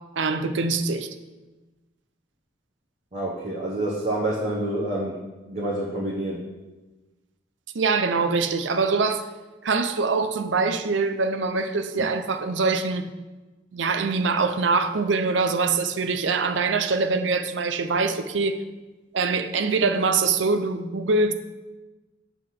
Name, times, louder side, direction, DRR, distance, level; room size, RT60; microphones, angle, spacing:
voice 1, 0.1-1.1 7.7-9.3 9.6-13.1 13.7-18.6 19.1-21.3, right 4 dB, 85° right, 0.6 m, -24 dB
voice 2, 3.1-5.2 5.5-6.4, right 1 dB, 40° right, 1.2 m, -27 dB
7.8 x 3.9 x 6.5 m
head